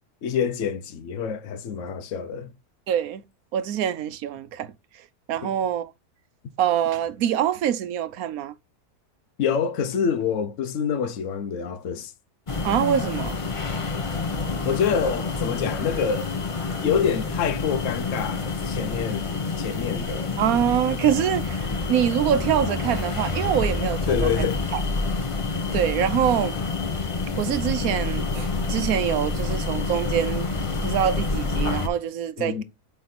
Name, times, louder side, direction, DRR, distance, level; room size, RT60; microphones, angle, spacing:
voice 1, 0.2-2.5 5.4-5.5 9.4-12.1 14.6-16.3 16.8-19.3 19.6-20.4 24.1-24.6 32.4-32.6, left 7 dB, 60° left, 1.1 m, -26 dB
voice 2, 2.9-3.2 3.5-4.7 5.3-5.9 6.6-8.5 12.6-13.4 20.4-24.8 25.7-26.6 27.4-30.5 30.8-32.6, right 10 dB, 75° right, 1.1 m, -25 dB
sound 1, 12.5-31.9, left 3 dB, 30° left, 0.7 m, -28 dB
8.3 x 3.4 x 4.1 m
omnidirectional pair, 1.6 m